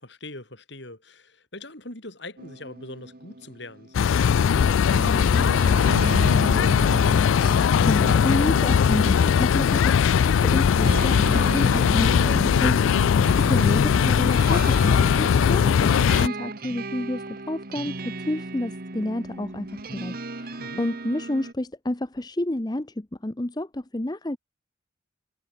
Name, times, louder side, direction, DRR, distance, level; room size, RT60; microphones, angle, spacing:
voice 1, 0.0-7.2 20.6-20.8, left 1 dB, 60° left, 6.6 m, -41 dB
sound 1, 2.4-21.5, right 2 dB, 45° right, 1.4 m, -35 dB
sound 2, 3.9-16.3, left 7 dB, 80° left, 0.3 m, -19 dB
voice 2, 7.9-24.4, left 1 dB, 20° left, 0.7 m, -30 dB
head